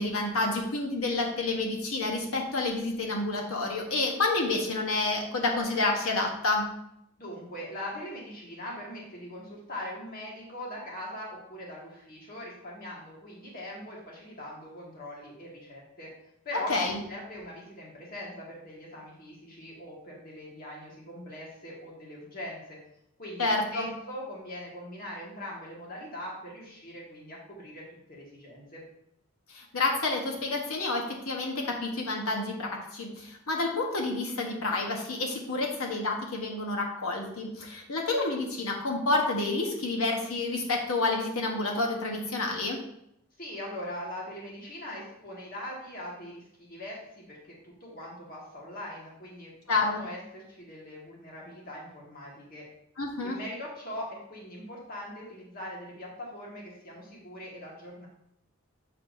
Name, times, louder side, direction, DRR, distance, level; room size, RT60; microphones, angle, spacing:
voice 1, 0.0-6.7 16.5-17.0 23.4-23.9 29.5-42.8 49.7-50.0 53.0-53.4, left 2 dB, 75° left, 1 dB, 1.1 m, -29 dB
voice 2, 7.2-16.1 16.4-16.7 17.1-22.8 23.2-27.8 28.1-28.8 43.4-47.4 47.6-52.7 53.2-58.1, left 1 dB, 40° left, -3 dB, 1.7 m, -41 dB
7.1 x 6.6 x 2.7 m, 0.77 s
head